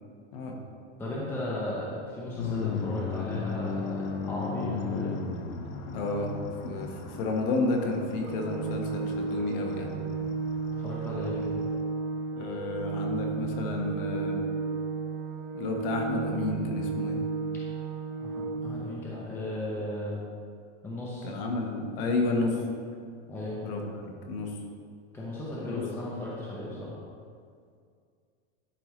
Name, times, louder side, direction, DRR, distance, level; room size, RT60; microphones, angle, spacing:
voice 1, 1.0-5.1 10.8-11.5 18.2-20.2 20.8-21.3 23.3-23.6 25.1-27.0, left 1 dB, 5° left, -5 dB, 0.6 m, -35 dB
sound 1, 2.4-11.8, left 5 dB, 70° left, 0.9 m, -36 dB
voice 2, 5.9-6.3 6.6-9.9 12.4-14.4 15.5-17.2 21.2-22.6 23.6-24.6 25.6-25.8, left 2 dB, 50° left, 2 dB, 1.2 m, -31 dB
Organ, 8.2-19.2, right 4 dB, 90° right, 0.6 m, -33 dB
11.5 x 4.6 x 3.1 m, 2.2 s
supercardioid pair, 170°, 37 cm